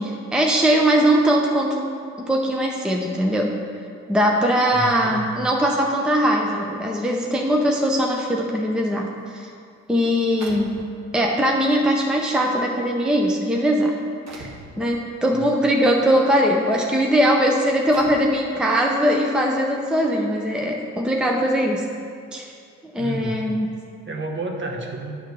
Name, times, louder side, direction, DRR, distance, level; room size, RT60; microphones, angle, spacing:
voice 1, 0.0-3.5 4.1-9.5 9.9-10.8 11.1-13.9 14.3-21.9 22.3-22.5 22.8-23.7, equal, 5° right, 0 dB, 0.6 m, -21 dB
voice 2, 4.7-5.3 15.3-15.4 23.0-23.4 24.1-25.2, right 2 dB, 40° right, 1 dB, 1.0 m, -31 dB
sound 1, 9.3-9.4 10.4-11.2 12.1-12.2 13.0-13.2 14.3-14.7 16.0-16.2 16.8-16.9 17.9-18.4, right 2 dB, 60° right, 1.1 m, -40 dB
8.7 x 3.3 x 6.5 m, 2.3 s
cardioid pair, 90°, 30 cm